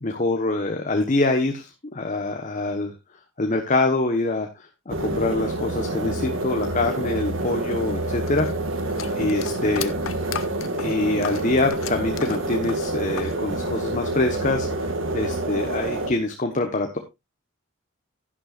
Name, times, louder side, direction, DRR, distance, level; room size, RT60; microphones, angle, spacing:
voice 1, 0.0-2.9 3.4-8.5 9.2-10.3 10.8-17.0, left 2 dB, 40° left, 4 dB, 1.2 m, -25 dB
sound 1, 4.9-16.1, right 2 dB, 75° right, 1.9 m, -27 dB
sound 2, 8.3-13.4 13.6-14.5, left 7 dB, 80° left, 0.8 m, -35 dB
11.5 x 11.0 x 2.5 m, 0.23 s
head